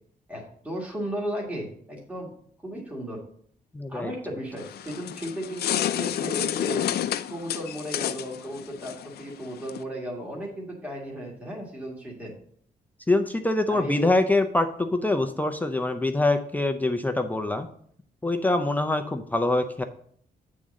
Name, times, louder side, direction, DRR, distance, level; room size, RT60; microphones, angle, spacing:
voice 1, 0.3-2.3 2.6-3.2 3.9-6.8 7.3-12.3 13.7-14.1, equal, 10° right, -3 dB, 1.6 m, -35 dB
voice 2, 3.7-4.1 13.1-17.7 18.2-19.8, left 2 dB, 10° left, 6 dB, 0.5 m, -24 dB
sound 1, 4.6-9.8, left 11 dB, 85° left, 0.4 m, -30 dB
8.6 x 3.7 x 6.3 m, 0.62 s
wide cardioid pair, 170°, 16 cm